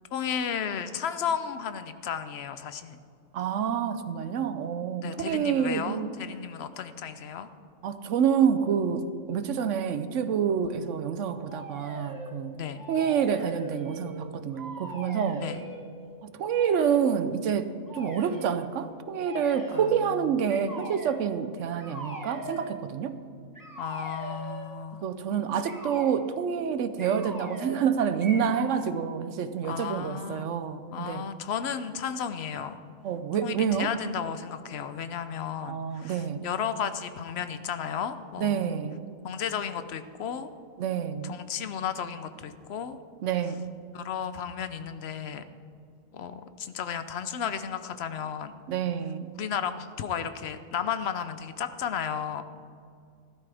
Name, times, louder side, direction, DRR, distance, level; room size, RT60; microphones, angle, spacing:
voice 1, 0.1-3.0 5.0-7.5 12.5-12.8 15.4-15.6 19.7-20.0 23.8-25.1 29.7-30.5 30.9-32.8 33.4-38.7 39.2-40.5 41.2-43.0 43.9-45.4 46.1-48.5 49.4-52.4, left 8 dB, 60° left, 11 dB, 0.8 m, -33 dB
voice 2, 3.3-6.1 7.8-12.6 12.9-15.4 16.2-23.2 25.0-31.2 33.0-33.9 35.6-36.5 38.4-39.1 40.8-41.4 43.2-43.7 48.7-49.3, right 7 dB, 70° right, 11 dB, 0.9 m, -28 dB
sound 1, 11.5-12.3 12.7-14.2 14.5-15.8 16.5-17.0 17.9-18.5 19.2-20.0 20.5-21.2 21.8-22.7 23.5-24.7 25.6-26.1 27.0-27.9 28.2-28.9, right 1 dB, 15° right, 1.3 m, -41 dB
15.0 x 12.5 x 3.4 m, 2.3 s
omnidirectional pair, 1.3 m